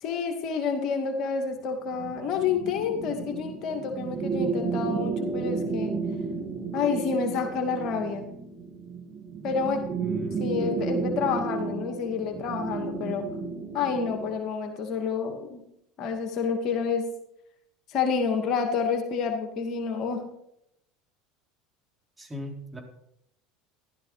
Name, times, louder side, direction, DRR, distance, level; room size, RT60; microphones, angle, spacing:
voice 1, 0.0-5.9 6.7-8.3 9.4-9.9 10.4-13.3 13.7-15.6 16.0-17.1 17.9-20.3, left 5 dB, 55° left, 4 dB, 2.3 m, -29 dB
sound 1, 1.9-14.4, right 4 dB, 45° right, 3.2 m, -32 dB
voice 2, 10.0-10.5 22.2-22.8, equal, 15° right, 1 dB, 4.2 m, -39 dB
14.5 x 12.5 x 5.0 m, 0.78 s
hypercardioid pair, 85°, 0 cm